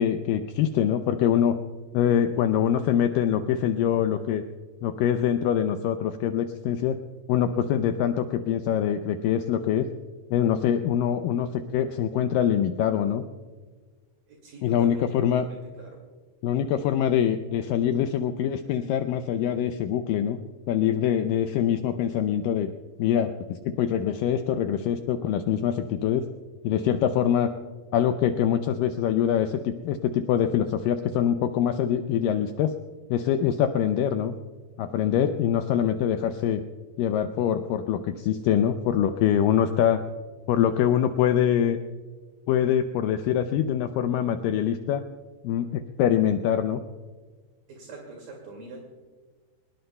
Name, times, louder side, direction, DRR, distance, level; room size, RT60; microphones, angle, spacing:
voice 1, 0.0-1.6 1.9-4.4 4.8-7.0 7.3-9.9 10.3-13.2 14.6-15.4 16.4-20.4 20.7-22.7 23.0-26.3 26.6-27.5 27.9-32.7 33.1-34.3 34.8-36.6 37.0-40.0 40.5-41.8 42.5-45.0 45.4-46.8, left 9 dB, 80° left, 7 dB, 2.0 m, -24 dB
voice 2, 14.3-16.0 47.7-48.8, right 3 dB, 65° right, 0 dB, 3.8 m, -44 dB
24.0 x 20.5 x 2.2 m, 1.4 s
omnidirectional pair, 4.5 m